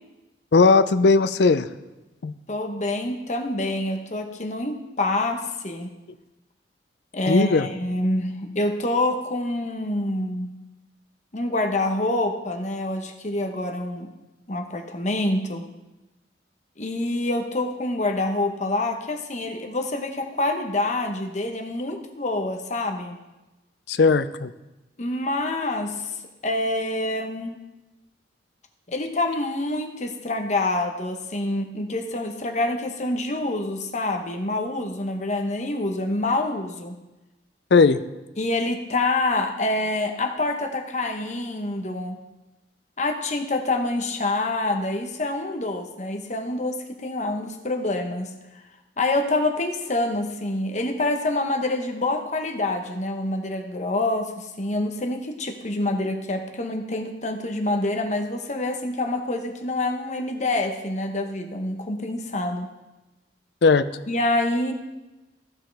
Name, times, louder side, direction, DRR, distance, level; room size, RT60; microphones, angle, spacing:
voice 1, 0.5-1.7 2.2-2.3 7.3-7.7 23.9-24.5 37.7-38.0 63.6-63.8, left 4 dB, 60° left, 13 dB, 0.4 m, -17 dB
voice 2, 2.5-5.9 7.1-10.5 11.3-14.1 14.5-15.6 16.8-23.2 25.0-26.2 26.4-27.6 28.9-37.0 38.4-42.2 43.0-48.3 49.0-62.7 64.1-64.7, left 2 dB, 40° left, 4 dB, 1.0 m, -26 dB
15.5 x 5.6 x 3.4 m, 1.0 s
head